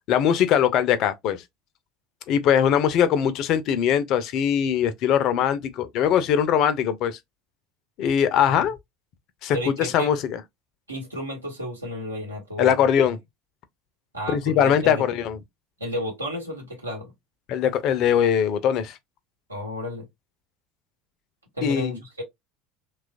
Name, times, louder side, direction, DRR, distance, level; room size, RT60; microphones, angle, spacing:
voice 1, 0.1-1.4 2.3-7.2 8.0-8.8 9.4-10.4 12.6-13.2 14.3-15.4 17.5-19.0 21.6-22.0, left 9 dB, 50° left, 0.4 m, -21 dB
voice 2, 9.5-10.1 10.9-13.1 14.1-15.0 15.8-17.1 19.5-20.1 21.5-22.2, equal, 85° right, 1.0 m, -32 dB
3.0 x 2.3 x 2.4 m
figure-of-eight pair, 70°, 0 cm